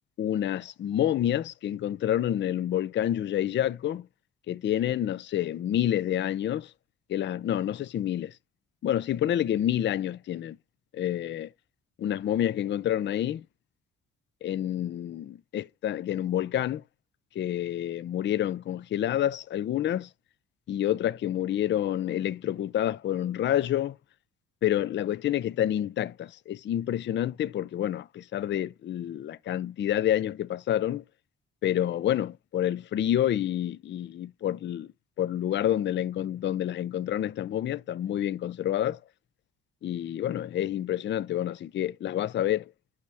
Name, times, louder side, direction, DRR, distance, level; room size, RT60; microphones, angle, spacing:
voice 1, 0.2-4.0 4.5-6.7 7.1-8.3 8.8-10.6 10.9-11.5 12.0-13.4 14.4-16.8 17.4-20.1 20.7-24.0 24.6-31.0 31.6-34.9 35.2-39.0 39.8-42.6, left 11 dB, 40° left, 0.4 m, -28 dB
6.3 x 5.7 x 3.3 m
cardioid pair, 90°, 30 cm